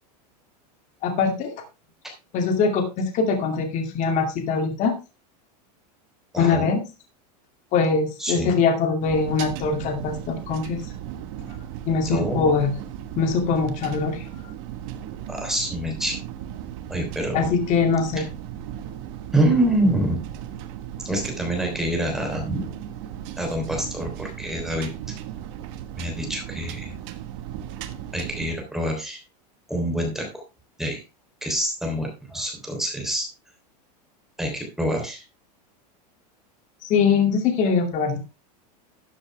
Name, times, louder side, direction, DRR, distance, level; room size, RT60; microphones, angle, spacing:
voice 1, 1.0-1.5 2.3-4.9 6.4-6.8 7.7-10.8 11.9-12.7 13.2-14.2 17.3-18.3 36.8-38.3, left 5 dB, 35° left, 5 dB, 2.4 m, -22 dB
voice 2, 6.3-6.7 8.2-8.6 12.0-12.6 15.3-16.2 16.9-17.5 19.3-20.2 21.0-22.7 23.4-24.9 26.0-27.0 28.1-29.2 29.7-30.3 30.8-31.0 31.4-33.3 34.4-35.2, right 1 dB, ahead, 1 dB, 3.3 m, -26 dB
sound 1, 9.0-28.6, right 11 dB, 50° right, 1.3 m, -36 dB
12.5 x 7.7 x 3.3 m, 0.28 s
supercardioid pair, 150°, 20 cm